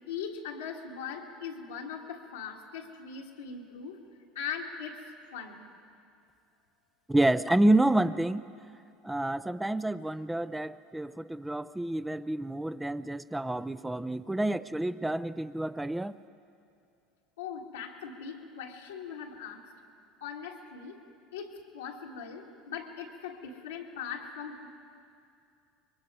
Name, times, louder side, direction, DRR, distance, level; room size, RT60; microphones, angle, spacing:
voice 1, 0.0-4.0 4.4-5.0 5.3-5.6 17.4-19.7 20.2-21.0 21.3-24.7, left 7 dB, 90° left, -3 dB, 1.8 m, -40 dB
voice 2, 7.1-8.4 9.0-16.1, right 1 dB, 10° right, 14 dB, 0.5 m, -28 dB
25.5 x 22.0 x 4.8 m, 2.5 s
hypercardioid pair, 80°, 0 cm